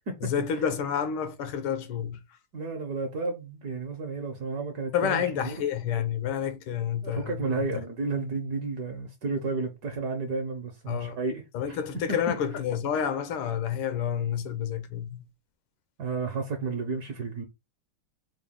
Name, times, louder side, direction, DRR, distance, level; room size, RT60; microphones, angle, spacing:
voice 1, 0.2-2.4 4.9-7.7 10.9-11.2 11.5-15.3, left 8 dB, 75° left, 1.5 m, -29 dB
voice 2, 2.5-5.5 7.0-11.8 16.0-17.4, right 3 dB, 60° right, 1.1 m, -32 dB
4.9 x 2.3 x 3.6 m
omnidirectional pair, 2.4 m